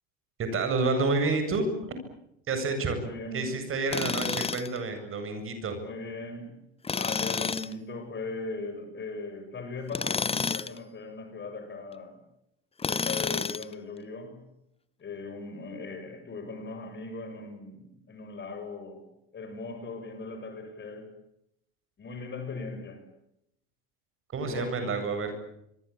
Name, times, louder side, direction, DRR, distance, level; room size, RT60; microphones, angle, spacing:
voice 1, 0.4-1.7 2.5-3.0 3.3-5.8 24.3-25.4, right 3 dB, 40° right, 7.9 m, -29 dB
voice 2, 2.9-3.5 4.1-4.3 5.7-6.6 6.9-12.2 12.8-14.4 15.0-21.1 22.0-23.1 24.4-24.9, left 3 dB, 35° left, 7.5 m, -39 dB
Tools, 3.9-4.8 6.8-7.7 9.9-10.8 12.8-13.7, left 5 dB, 20° left, 1.0 m, -30 dB
26.0 x 23.5 x 8.7 m
hypercardioid pair, 80°, 31 cm